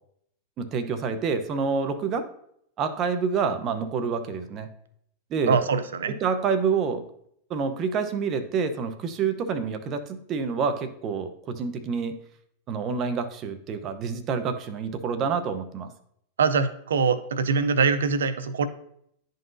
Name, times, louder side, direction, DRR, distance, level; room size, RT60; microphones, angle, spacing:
voice 1, 0.6-2.3 2.8-4.7 5.3-5.6 6.2-7.1 7.5-12.2 12.7-15.9, right 5 dB, 40° right, 9 dB, 0.8 m, -27 dB
voice 2, 5.5-6.1 16.4-18.7, right 5 dB, 85° right, 11 dB, 0.5 m, -23 dB
10.5 x 3.9 x 2.6 m, 0.70 s
hypercardioid pair, 110°, 0 cm